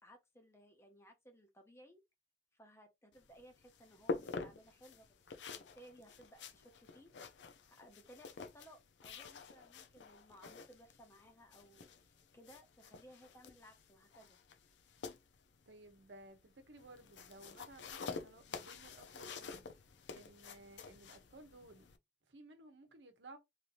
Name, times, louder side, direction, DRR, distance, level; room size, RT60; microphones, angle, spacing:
voice 1, 0.0-2.0 2.5-5.1 5.5-7.1 7.7-14.4, equal, 15° left, 0.7 m, -60 dB
sound 1, 3.1-22.0, left 4 dB, 80° left, 0.5 m, -49 dB
voice 2, 15.7-19.6 20.1-21.9 22.3-23.4, right 2 dB, 75° right, 0.9 m, -57 dB
3.2 x 2.7 x 2.5 m
head